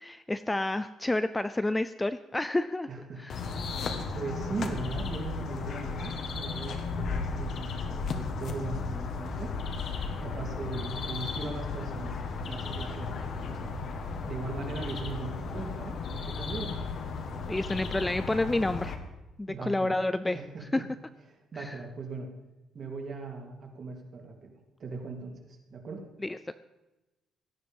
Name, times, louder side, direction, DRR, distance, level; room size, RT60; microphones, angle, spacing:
voice 1, 0.0-2.9 3.2-3.4 17.5-18.9 19.4-20.4 20.7-20.8 21.6-21.7 26.2-26.5, left 2 dB, 10° left, 12 dB, 0.4 m, -29 dB
voice 2, 2.9-3.2 3.7-9.5 10.2-12.1 12.5-13.2 13.5-13.7 14.0-16.7 19.5-20.0 20.3-20.8 21.3-22.3 22.7-26.0, right 4 dB, 40° right, 2 dB, 2.9 m, -39 dB
sound 1, 3.3-18.9, left 4 dB, 50° left, 1.9 m, -35 dB
17.5 x 12.5 x 5.4 m, 1.0 s
cardioid pair, 165°, 0 cm